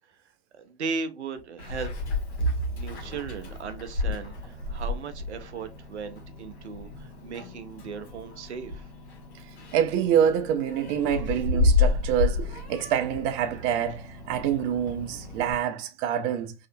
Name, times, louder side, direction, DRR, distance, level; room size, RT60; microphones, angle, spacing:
voice 1, 0.5-1.9 2.7-8.9 11.3-11.4, right 5 dB, 85° right, 0.5 m, -37 dB
Meow, 1.6-15.5, left 3 dB, 80° left, 1.1 m, -31 dB
voice 2, 9.7-16.5, right 9 dB, 40° right, 0.5 m, -26 dB
2.8 x 2.4 x 2.7 m
figure-of-eight pair, 90°, 33 cm